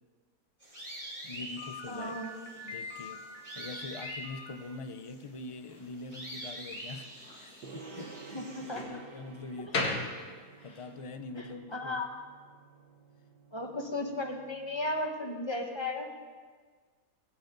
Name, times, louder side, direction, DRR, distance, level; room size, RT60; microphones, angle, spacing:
sound 1, 0.6-8.8, right 1 dB, 20° right, 5.6 m, -46 dB
voice 1, 1.2-2.2 2.6-3.3 3.6-9.9 10.6-12.0, left 3 dB, 50° left, 9 dB, 0.3 m, -44 dB
Slam, 1.6-10.9, left 2 dB, 70° left, 2.6 m, -41 dB
voice 2, 1.9-2.3 8.3-9.0 11.4-12.1 13.5-16.1, left 2 dB, 15° left, 2 dB, 1.6 m, -35 dB
Gong, 7.6-15.1, right 5 dB, 80° right, 1.8 m, -52 dB
20.5 x 16.0 x 4.0 m, 1.5 s
omnidirectional pair, 1.7 m